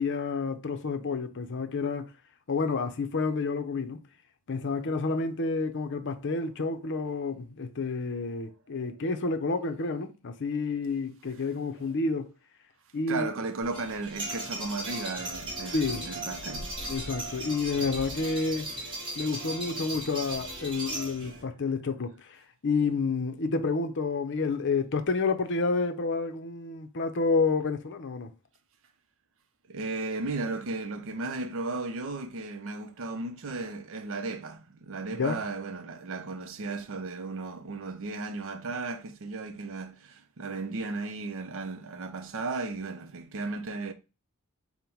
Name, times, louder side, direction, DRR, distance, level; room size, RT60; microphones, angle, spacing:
voice 1, 0.0-2.1 2.5-4.0 4.5-12.3 12.9-13.3 15.7-16.1 16.9-18.7 19.2-28.3 35.2-35.4, left 4 dB, 55° left, 0.6 m, -29 dB
voice 2, 13.1-16.8 29.7-43.9, right 3 dB, 60° right, 0.6 m, -35 dB
sound 1, 13.6-21.4, right 1 dB, 25° right, 1.3 m, -37 dB
5.3 x 2.1 x 4.5 m
head